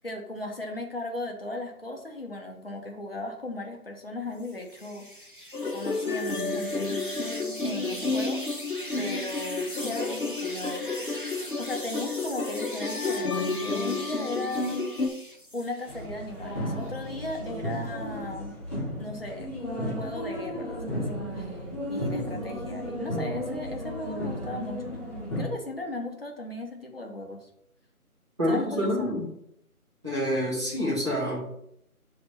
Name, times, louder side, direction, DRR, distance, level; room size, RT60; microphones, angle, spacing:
voice 1, 0.0-5.1 5.7-7.0 7.6-8.4 9.0-10.8 11.6-14.8 15.5-18.5 19.0-19.5 19.8-21.5 21.9-25.0 25.4-27.5 28.4-29.2, left 2 dB, 40° left, 0 dB, 1.0 m, -36 dB
sound 1, 4.4-16.0 16.4-17.4, equal, 35° right, 0.6 m, -41 dB
sound 2, 5.5-15.1, left 3 dB, 80° left, 1.0 m, -31 dB
sound 3, 15.9-25.4, equal, 15° left, 2.6 m, -34 dB
voice 2, 28.4-29.3 30.0-31.5, equal, 20° right, -10 dB, 1.7 m, -27 dB
5.5 x 3.4 x 5.6 m, 0.75 s
figure-of-eight pair, 180°, 44 cm